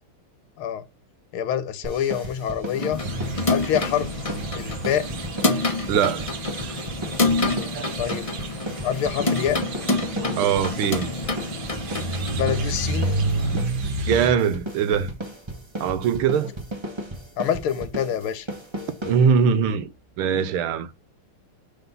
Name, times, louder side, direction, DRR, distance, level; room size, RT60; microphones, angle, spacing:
voice 1, 1.3-3.0 3.5-5.3 7.9-8.3 8.8-9.6 12.3-13.1 17.4-18.5, left 9 dB, 75° left, 1.6 m, -26 dB
sound 1, 1.8-19.6, right 1 dB, 20° right, 0.8 m, -35 dB
sound 2, 2.7-13.6, left 2 dB, 35° left, 0.5 m, -28 dB
sound 3, 3.0-14.3, right 2 dB, 55° right, 1.5 m, -31 dB
voice 2, 5.9-6.3 7.5-8.0 10.2-11.1 14.1-15.1 15.8-16.5 19.1-19.9 20.2-20.9, right 7 dB, 80° right, 1.6 m, -22 dB
5.9 x 3.9 x 5.3 m
omnidirectional pair, 2.4 m